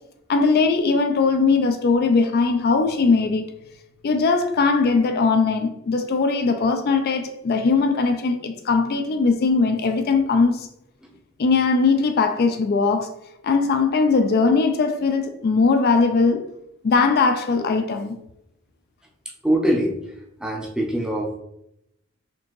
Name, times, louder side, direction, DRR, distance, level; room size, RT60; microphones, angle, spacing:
voice 1, 0.3-3.4 4.0-10.7 11.4-13.1 13.4-16.5 16.8-18.2, left 4 dB, 50° left, 0.4 m, -20 dB
voice 2, 19.4-20.0 20.4-21.4, right 1 dB, 5° right, 0.6 m, -23 dB
4.4 x 2.7 x 3.0 m
head